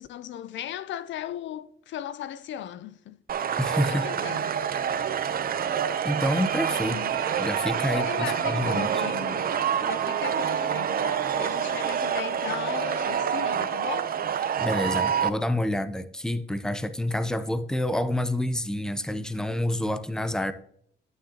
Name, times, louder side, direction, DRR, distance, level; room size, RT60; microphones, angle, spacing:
voice 1, 0.0-3.2 3.9-4.5 6.7-7.2 7.9-9.5 9.8-14.1, left 11 dB, 70° left, 0.5 m, -37 dB
sound 1, 3.3-15.3, right 8 dB, 50° right, 0.6 m, -27 dB
voice 2, 3.6-4.1 6.0-7.0 7.4-9.0 14.6-20.5, left 1 dB, 5° left, 0.6 m, -28 dB
9.5 x 9.0 x 2.9 m
cardioid pair, 90°, 20 cm